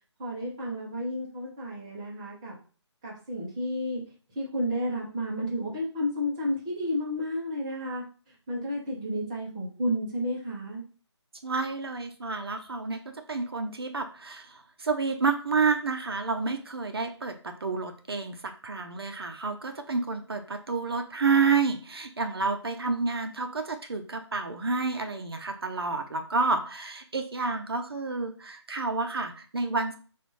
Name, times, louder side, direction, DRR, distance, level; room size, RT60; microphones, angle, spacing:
voice 1, 0.2-2.6 3.0-4.0 4.3-10.8, equal, 10° right, -5 dB, 0.7 m, -32 dB
voice 2, 11.4-30.0, right 4 dB, 55° right, 6 dB, 0.7 m, -29 dB
4.2 x 2.5 x 4.7 m, 0.39 s
figure-of-eight pair, 170°, 15 cm